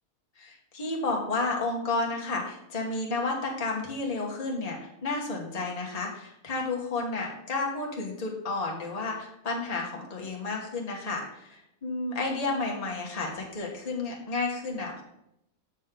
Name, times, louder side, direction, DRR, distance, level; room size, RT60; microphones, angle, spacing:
voice 1, 0.4-15.0, left 3 dB, 30° left, -1 dB, 1.3 m, -31 dB
7.8 x 6.3 x 3.7 m, 0.81 s
omnidirectional pair, 1.5 m